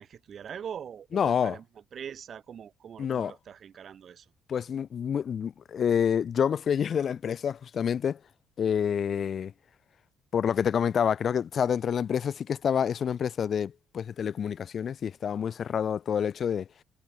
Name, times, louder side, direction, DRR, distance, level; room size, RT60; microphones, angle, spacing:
voice 1, 0.0-1.6 1.9-4.3, right 8 dB, 45° right, 3.0 m, -42 dB
voice 2, 1.1-1.6 3.0-3.3 4.5-8.2 8.6-9.5 10.3-16.7, left 8 dB, 45° left, 1.7 m, -28 dB
cardioid pair, 140°, 0 cm